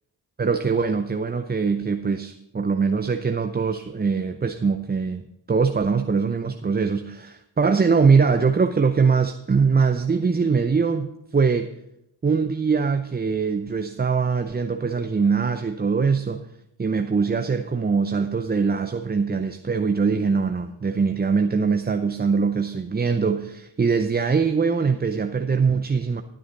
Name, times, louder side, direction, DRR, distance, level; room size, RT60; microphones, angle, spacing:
voice 1, 0.4-11.7 12.2-16.4 16.8-26.2, right 5 dB, 20° right, 8 dB, 0.6 m, -22 dB
12.5 x 9.3 x 4.0 m, 0.83 s
supercardioid pair, 45°, 48 cm